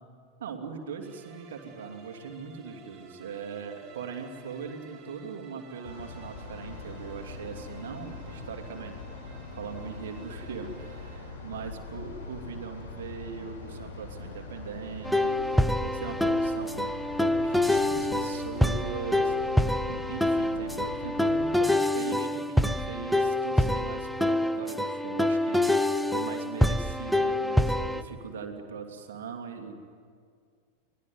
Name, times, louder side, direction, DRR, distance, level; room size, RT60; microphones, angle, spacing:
voice 1, 0.4-8.9 9.6-16.9 17.2-25.8 26.1-29.7, right 5 dB, 60° right, 4 dB, 2.8 m, -40 dB
sound 1, 1.0-11.2, right 3 dB, 30° right, 3.5 m, -52 dB
sound 2, 5.8-21.6, left 3 dB, 55° left, 6.1 m, -42 dB
sound 3, 15.0-28.0, left 1 dB, ahead, 0.8 m, -26 dB
24.5 x 19.5 x 9.5 m, 2.1 s
figure-of-eight pair, 90°, 0 cm